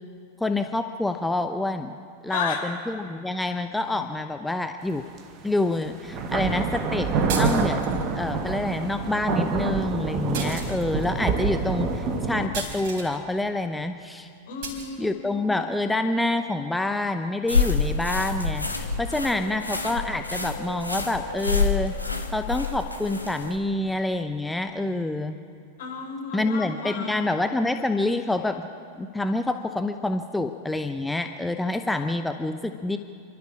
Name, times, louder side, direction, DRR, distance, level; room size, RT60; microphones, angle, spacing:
voice 1, 0.4-1.9 2.2-5.0 5.4-7.1 7.3-7.8 8.1-14.3 15.0-22.0 22.3-25.4 26.3-28.7 29.0-33.0, left 2 dB, 5° left, 7 dB, 0.7 m, -27 dB
voice 2, 2.3-2.6 14.5-15.4 25.8-27.2, left 5 dB, 55° left, 2 dB, 4.0 m, -33 dB
sound 1, 5.2-5.3 6.0-12.5, right 5 dB, 35° right, 1.6 m, -26 dB
sound 2, 7.3-8.0 10.3-11.1 12.5-13.1 14.6-14.9, right 4 dB, 50° right, 4.2 m, -34 dB
sound 3, 17.5-23.5, left 4 dB, 85° left, 1.8 m, -27 dB
28.5 x 13.0 x 7.2 m, 2.4 s
figure-of-eight pair, 90°, 0 cm